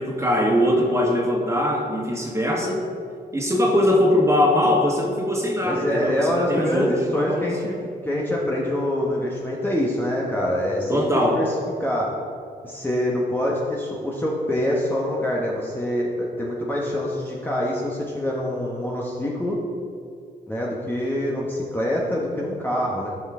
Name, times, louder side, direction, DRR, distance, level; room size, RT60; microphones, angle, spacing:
voice 1, 0.0-2.8 3.3-6.9 7.2-7.5 10.9-11.4, left 1 dB, 15° right, -2 dB, 2.0 m, -21 dB
voice 2, 5.6-12.1 12.6-19.6 20.5-23.1, left 1 dB, 10° left, -4 dB, 1.3 m, -25 dB
13.0 x 5.4 x 3.8 m, 2.4 s
cardioid pair, 70°, 17 cm